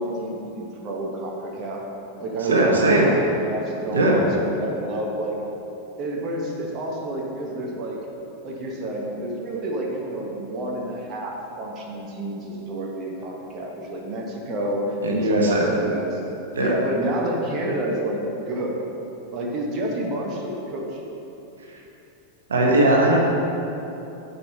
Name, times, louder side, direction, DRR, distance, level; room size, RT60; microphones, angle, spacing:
voice 1, 0.0-1.8 2.2-5.4 6.0-8.0 8.4-16.2 16.6-18.8 19.3-21.0, right 1 dB, 35° right, -1 dB, 1.2 m, -29 dB
voice 2, 2.5-3.1 3.9-4.2 15.0-15.7 16.5-16.7 22.5-23.2, right 1 dB, 70° right, -1 dB, 1.2 m, -19 dB
8.3 x 5.3 x 6.3 m, 3.0 s
figure-of-eight pair, 90°, 0 cm